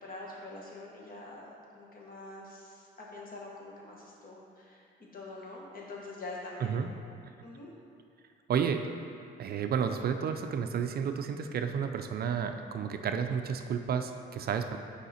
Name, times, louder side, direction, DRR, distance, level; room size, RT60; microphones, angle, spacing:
voice 1, 0.0-4.8 5.1-6.8 7.4-7.7, left 2 dB, 45° left, -3 dB, 1.3 m, -45 dB
voice 2, 8.5-8.8 9.4-14.8, right 7 dB, 50° right, 6 dB, 0.4 m, -31 dB
5.5 x 4.8 x 4.2 m, 2.5 s
cardioid pair, 90°, 20 cm